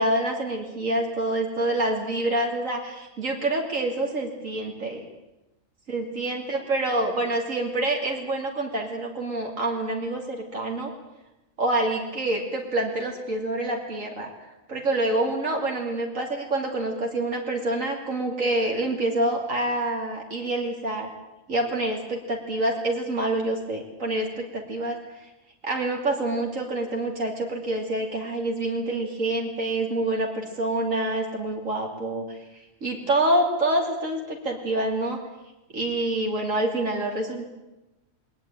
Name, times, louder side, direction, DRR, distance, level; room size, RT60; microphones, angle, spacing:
voice 1, 0.0-5.1 5.9-10.9 11.6-14.3 14.7-21.1 21.5-25.0 25.6-32.4 32.8-35.2 35.7-37.5, right 1 dB, 75° right, 1 dB, 3.2 m, -27 dB
21.5 x 19.0 x 9.0 m, 0.99 s
omnidirectional pair, 1.4 m